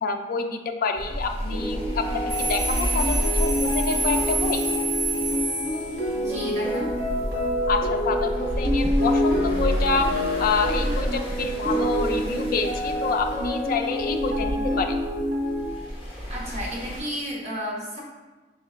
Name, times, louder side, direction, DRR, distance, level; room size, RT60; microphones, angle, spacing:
voice 1, 0.0-4.6 7.7-14.9, left 4 dB, 55° left, 5 dB, 0.4 m, -28 dB
sound 1, 1.0-17.0, equal, 30° left, 1.0 m, -31 dB
sound 2, 1.5-15.6, equal, 60° right, 1.5 m, -27 dB
sound 3, 2.3-6.3, right 3 dB, 85° right, 0.7 m, -28 dB
voice 2, 6.2-6.9 16.3-18.0, equal, 40° right, -4 dB, 1.1 m, -32 dB
5.1 x 3.6 x 2.4 m, 1.2 s
head